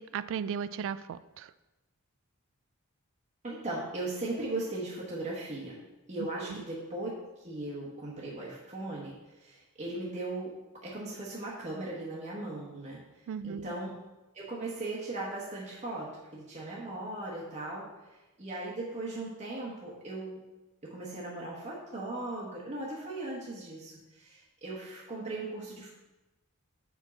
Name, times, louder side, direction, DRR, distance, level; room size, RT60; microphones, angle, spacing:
voice 1, 0.0-1.5 6.2-6.6 13.3-13.7, right 7 dB, 60° right, 16 dB, 0.3 m, -36 dB
voice 2, 3.4-5.8 6.1-7.1 7.4-10.5 10.8-13.0 13.4-13.9 14.3-17.9 18.4-20.4 20.8-25.9, right 2 dB, 30° right, -5 dB, 1.1 m, -38 dB
4.8 x 4.5 x 6.1 m, 1.0 s
head